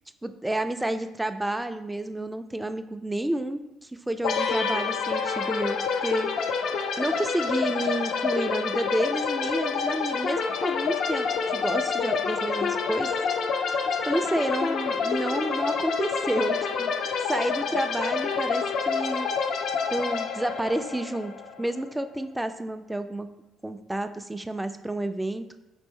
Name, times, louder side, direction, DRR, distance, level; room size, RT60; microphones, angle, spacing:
voice 1, 0.2-3.6 4.1-6.3 7.0-13.1 14.1-16.9 17.2-19.3 19.9-23.3 23.6-25.4, right 1 dB, 10° right, 9 dB, 0.3 m, -30 dB
sound 1, 4.2-21.8, left 5 dB, 70° left, 0.4 m, -28 dB
4.2 x 2.6 x 3.6 m, 0.94 s
supercardioid pair, 70°, 0 cm